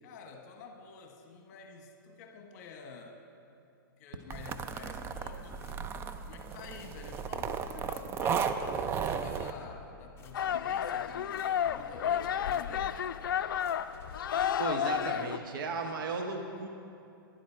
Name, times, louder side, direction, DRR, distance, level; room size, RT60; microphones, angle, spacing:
voice 1, 0.0-3.2 4.0-5.6 6.3-13.0, left 5 dB, 45° left, 4 dB, 1.2 m, -49 dB
sound 1, 4.3-9.5, right 6 dB, 20° right, 0.4 m, -35 dB
sound 2, 5.1-14.2, left 5 dB, 20° left, 0.9 m, -55 dB
sound 3, 10.3-15.4, left 9 dB, 65° left, 0.4 m, -31 dB
voice 2, 14.6-16.7, right 4 dB, 60° right, 4 dB, 0.9 m, -35 dB
12.0 x 10.5 x 4.5 m, 2.6 s
hypercardioid pair, 125°, 12 cm